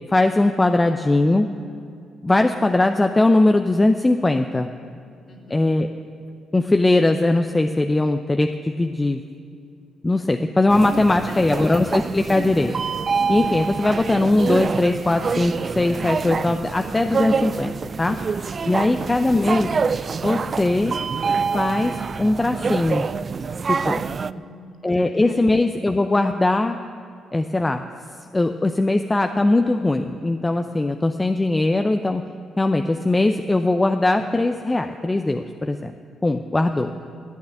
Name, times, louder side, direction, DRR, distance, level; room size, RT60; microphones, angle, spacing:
voice 1, 0.1-1.5 2.2-4.7 5.5-5.9 6.5-9.2 10.0-12.7 13.3-18.2 18.7-19.7 20.2-21.0 21.5-23.0 23.7-24.0 24.8-26.8 27.3-27.8 28.3-32.3 32.6-35.9 36.2-36.9, left 2 dB, 20° left, 6 dB, 0.6 m, -20 dB
voice 2, 5.3-5.8 10.8-11.8 18.6-19.1 23.8-25.5 36.7-37.2, left 1 dB, 45° left, 0 dB, 2.6 m, -40 dB
sound 1, 10.7-24.3, right 5 dB, 45° right, 0.3 m, -26 dB
13.0 x 8.7 x 8.3 m, 2.4 s
hypercardioid pair, 50°, 0 cm